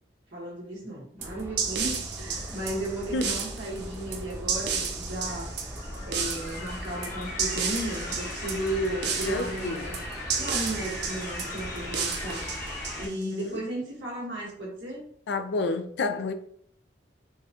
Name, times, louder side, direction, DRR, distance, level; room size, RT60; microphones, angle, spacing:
voice 1, 0.3-5.5 6.0-10.0 10.3-12.5 13.0-15.0, right 1 dB, 85° right, 1.5 m, -34 dB
sound 1, 1.2-13.0, equal, 15° right, 0.7 m, -40 dB
sound 2, 1.2-13.4, right 6 dB, 65° right, 0.6 m, -33 dB
sound 3, 2.3-13.1, left 2 dB, 50° left, 1.3 m, -40 dB
voice 2, 9.2-10.0 13.0-13.6 15.3-16.3, left 3 dB, 70° left, 0.4 m, -30 dB
4.5 x 2.3 x 2.8 m
head